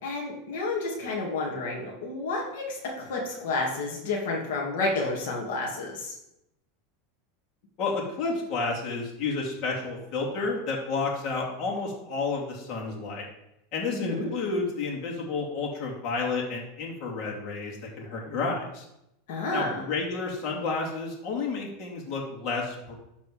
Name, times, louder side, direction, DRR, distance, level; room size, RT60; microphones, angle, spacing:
voice 1, 0.0-6.2 13.9-14.3 19.3-19.8, left 2 dB, 75° left, -2 dB, 2.2 m, -30 dB
voice 2, 7.8-13.2 13.7-18.8 19.5-22.9, left 4 dB, 50° left, -2 dB, 2.6 m, -31 dB
12.5 x 4.2 x 5.0 m, 0.83 s
supercardioid pair, 130°, 0 cm